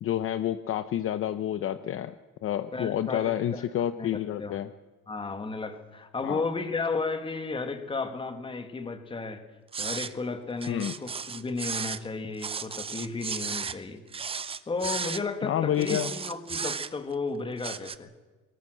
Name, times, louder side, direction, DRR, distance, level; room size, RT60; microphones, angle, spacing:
voice 1, 0.0-2.1 2.4-4.7 6.2-6.4 10.7-10.9 15.4-16.1, left 11 dB, 45° left, 12 dB, 0.7 m, -29 dB
voice 2, 2.7-3.6 4.0-4.6 5.1-9.4 9.8-14.0 14.7-18.1, left 4 dB, 15° left, 8 dB, 1.7 m, -33 dB
sound 1, 9.7-10.1 10.6-12.0 12.4-13.8 14.1-15.2 15.8-17.1 17.6-18.0, right 5 dB, 20° right, 0.7 m, -34 dB
22.5 x 20.0 x 7.7 m, 1.3 s
cardioid pair, 180°, 30 cm